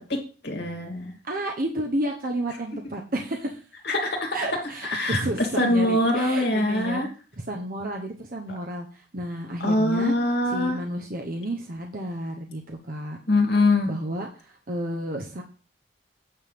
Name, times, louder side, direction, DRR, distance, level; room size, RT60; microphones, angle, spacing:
voice 1, 0.1-1.1 3.8-4.4 4.9-5.2 5.6-7.1 9.6-10.8 13.3-13.9, left 2 dB, 60° left, 1 dB, 2.6 m, -23 dB
voice 2, 1.2-3.6 4.3-7.1 7.4-10.1 10.5-13.2 13.8-15.4, right 1 dB, 45° right, 2 dB, 1.0 m, -31 dB
8.9 x 3.7 x 6.7 m, 0.36 s
head